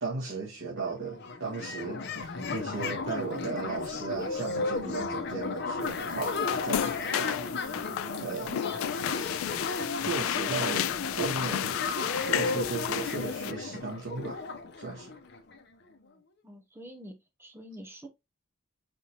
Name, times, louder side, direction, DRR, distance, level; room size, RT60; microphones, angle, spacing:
voice 1, 0.0-7.9 8.2-8.7 9.1-9.4 10.0-14.4 14.8-15.2, right 4 dB, 70° right, 1.4 m, -36 dB
sound 1, 0.7-0.8 1.0-15.6, left 3 dB, 55° left, 0.8 m, -34 dB
sound 2, 5.8-13.5, left 11 dB, 90° left, 0.3 m, -33 dB
voice 2, 16.4-17.1 17.4-18.1, equal, 10° right, 0.8 m, -46 dB
5.0 x 3.4 x 2.9 m
head